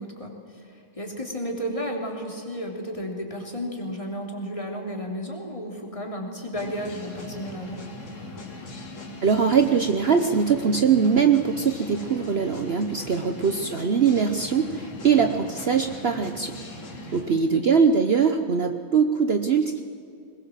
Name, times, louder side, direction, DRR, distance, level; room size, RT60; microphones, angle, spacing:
voice 1, 0.0-7.8 13.2-13.4 17.2-17.7, equal, 15° left, 0 dB, 3.2 m, -33 dB
sound 1, 6.5-17.3, left 2 dB, 65° left, 3.7 m, -39 dB
voice 2, 9.2-16.6 17.1-19.8, right 6 dB, 65° right, 7 dB, 0.6 m, -22 dB
21.5 x 21.0 x 7.5 m, 2.5 s
omnidirectional pair, 2.3 m